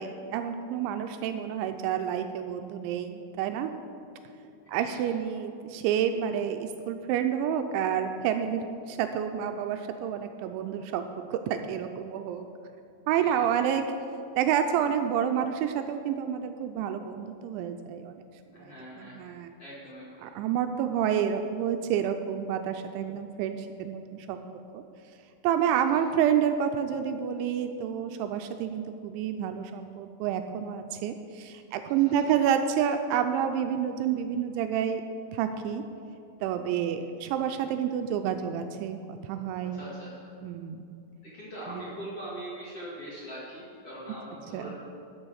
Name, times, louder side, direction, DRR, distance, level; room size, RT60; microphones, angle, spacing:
voice 1, 0.0-3.7 4.7-6.6 6.9-12.4 13.1-13.8 14.4-19.6 20.2-24.4 24.7-24.8 25.4-35.0 35.3-35.8 36.4-39.8 40.4-40.8 41.7-41.8 44.5-44.7, right 9 dB, 85° right, 7 dB, 2.7 m, -29 dB
voice 2, 4.6-5.2 13.2-13.7 18.5-19.2 19.6-20.3 25.7-26.0 32.0-32.1 37.0-37.3 39.7-40.1 41.2-44.8, equal, 55° left, -7 dB, 1.6 m, -42 dB
12.0 x 7.4 x 6.3 m, 2.6 s
omnidirectional pair, 5.7 m